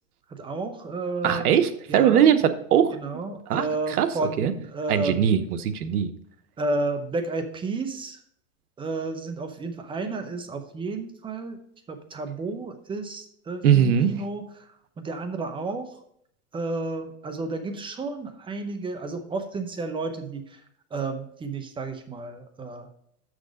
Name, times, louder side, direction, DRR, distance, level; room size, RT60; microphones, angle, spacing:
voice 1, 0.3-1.6 1.9-2.3 2.9-5.3 6.6-8.2 8.8-11.6 11.9-14.4 15.0-15.9 16.5-20.5 20.9-22.9, right 3 dB, 10° right, 8 dB, 0.7 m, -31 dB
voice 2, 1.2-2.9 3.5-4.1 4.4-4.5 4.9-6.1 13.6-14.1, right 9 dB, 85° right, 10 dB, 1.0 m, -21 dB
6.4 x 6.3 x 5.1 m, 0.70 s
hypercardioid pair, 130°, 44 cm